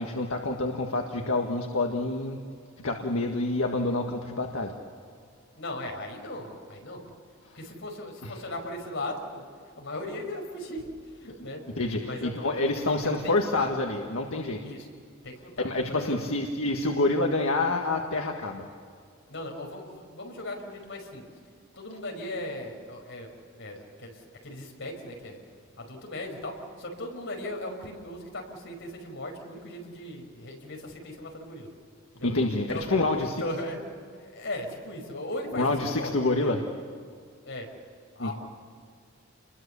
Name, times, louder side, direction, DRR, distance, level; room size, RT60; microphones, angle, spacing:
voice 1, 0.0-2.4 2.8-4.7 8.2-8.3 11.7-14.6 15.6-18.7 32.2-33.3 35.5-36.6 38.2-38.3, left 2 dB, 80° left, 2 dB, 1.8 m, -27 dB
voice 2, 5.5-7.0 7.5-9.4 9.8-11.6 12.0-13.7 14.6-14.9 15.2-16.2 19.3-21.2 21.8-23.3 23.5-25.4 25.8-31.7 32.1-32.3 32.7-33.8 34.2-36.6 37.4-37.7 38.2-38.3, left 1 dB, 60° left, 2 dB, 5.5 m, -38 dB
29.5 x 22.0 x 7.1 m, 2.2 s
head